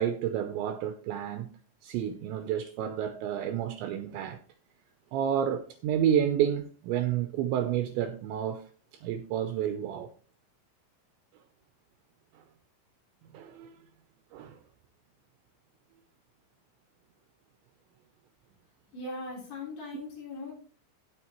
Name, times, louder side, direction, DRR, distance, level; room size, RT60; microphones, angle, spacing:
voice 1, 0.0-1.5 1.8-4.4 5.1-10.1 12.3-12.4 13.3-13.8 14.3-14.6, right 9 dB, 80° right, 2.7 m, -30 dB
voice 2, 18.9-20.5, left 2 dB, 55° left, 5.6 m, -39 dB
17.5 x 5.8 x 3.0 m
omnidirectional pair, 5.7 m